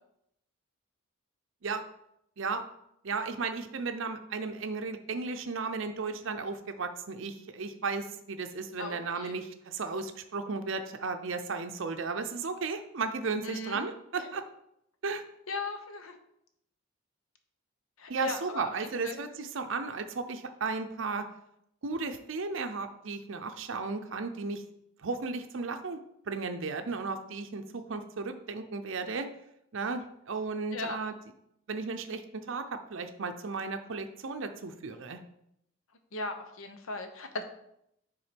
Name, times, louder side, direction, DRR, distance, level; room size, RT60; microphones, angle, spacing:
voice 1, 3.0-14.4 15.0-15.2 18.1-21.3 21.8-24.6 25.0-29.3 29.7-31.1 31.7-35.2, right 4 dB, 65° right, 7 dB, 0.6 m, -35 dB
voice 2, 8.8-9.4 13.4-13.8 14.2-14.3 15.5-16.1 18.0-18.7 19.0-19.2 30.7-31.0 36.1-37.4, left 3 dB, 75° left, 7 dB, 0.9 m, -37 dB
7.0 x 3.8 x 5.1 m, 0.77 s
head